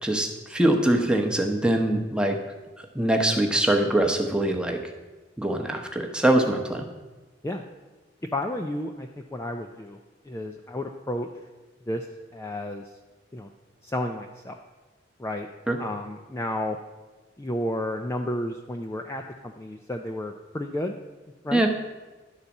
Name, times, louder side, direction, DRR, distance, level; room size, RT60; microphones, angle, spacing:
voice 1, 0.0-2.4 2.8-4.8 5.4-6.8 15.7-15.8 21.5-21.7, right 1 dB, 5° right, 2 dB, 0.8 m, -23 dB
voice 2, 8.3-10.0 10.2-11.3 11.9-12.1 12.3-12.9 13.3-13.5 13.8-14.6 15.2-15.5 15.8-16.8 17.4-21.0 21.4-21.6, left 1 dB, 15° left, 3 dB, 0.4 m, -32 dB
11.0 x 4.1 x 7.0 m, 1.2 s
head